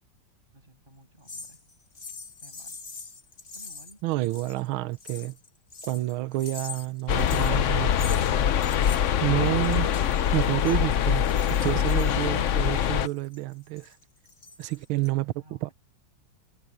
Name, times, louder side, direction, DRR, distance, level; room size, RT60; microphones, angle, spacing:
voice 1, 0.5-1.6 2.4-2.8 3.5-4.0 15.4-15.7, right 1 dB, 25° right, 8.2 m, -56 dB
sound 1, 1.3-4.7 4.9-8.3 8.6-15.1, left 4 dB, 30° left, 1.4 m, -44 dB
voice 2, 4.0-5.4 5.8-8.5 9.2-9.9 10.3-11.3 11.6-14.0 14.6-15.3 15.6-15.7, right 17 dB, 85° right, 1.6 m, -29 dB
sound 2, 7.1-13.1, left 9 dB, 90° left, 0.6 m, -24 dB
omnidirectional pair, 2.2 m